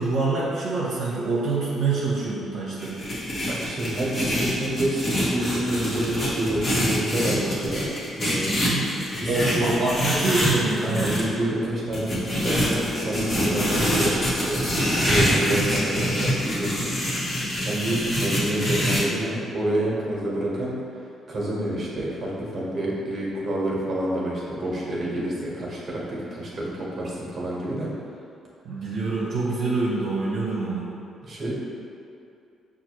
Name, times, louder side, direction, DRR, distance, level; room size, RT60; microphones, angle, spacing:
voice 1, 0.0-3.0 8.4-8.9 9.3-11.1 28.6-30.8, right 3 dB, 70° right, -7 dB, 0.7 m, -26 dB
sound 1, 2.8-11.2 11.9-19.0, equal, 40° left, 1.2 m, -25 dB
voice 2, 3.5-7.9 8.2-8.5 9.1-9.8 10.8-20.8 21.3-27.9 31.2-31.6, right 1 dB, 40° right, -5 dB, 1.1 m, -28 dB
5.8 x 2.4 x 3.0 m, 2.6 s
cardioid pair, 90°, 0 cm